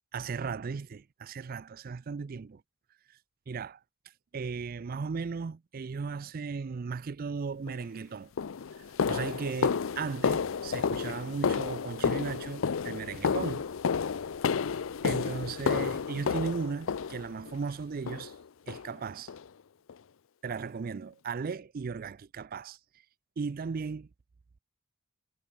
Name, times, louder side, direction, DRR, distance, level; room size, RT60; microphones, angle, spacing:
voice 1, 0.1-2.6 3.1-3.2 3.5-3.8 4.3-8.3 8.8-13.7 15.0-18.4 18.7-19.3 20.4-22.8 23.4-24.1, right 5 dB, 45° right, 0.4 m, -36 dB
sound 1, 7.7-7.8 8.4-17.6 18.1-18.4 18.7-18.9 19.3-19.5 19.9-20.0 20.5-20.6, left 6 dB, 75° left, 0.5 m, -31 dB
head